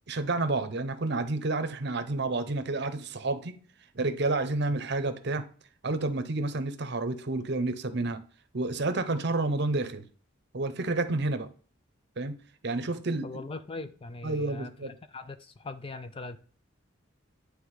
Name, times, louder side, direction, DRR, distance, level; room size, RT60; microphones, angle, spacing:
voice 1, 0.1-3.6 3.9-5.4 5.8-8.2 8.5-10.0 10.5-11.5 12.2-12.3 12.6-13.3 14.2-14.9, right 2 dB, 50° right, 0.8 m, -30 dB
voice 2, 13.2-16.4, left 3 dB, 25° left, 0.4 m, -41 dB
9.3 x 3.4 x 4.8 m
head